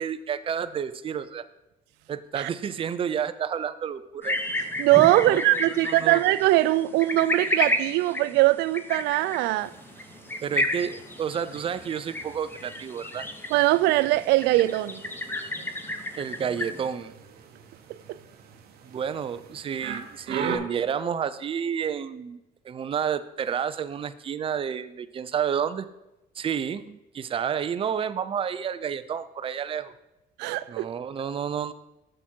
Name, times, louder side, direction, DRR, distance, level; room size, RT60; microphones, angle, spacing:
voice 1, 0.0-1.4 2.1-4.4 5.3-6.2 10.4-13.3 16.2-17.1 18.8-22.4 22.6-25.9 26.4-29.9 30.7-31.7, right 8 dB, 30° right, 0.5 m, -30 dB
sound 1, 4.2-16.9, left 1 dB, 15° left, 0.7 m, -32 dB
voice 2, 4.6-9.7 13.5-15.0 18.1-18.2 30.4-30.9, right 17 dB, 90° right, 0.4 m, -21 dB
sound 2, 9.6-20.6, right 7 dB, 65° right, 1.0 m, -42 dB
7.2 x 6.8 x 4.5 m
cardioid pair, 110°, 17 cm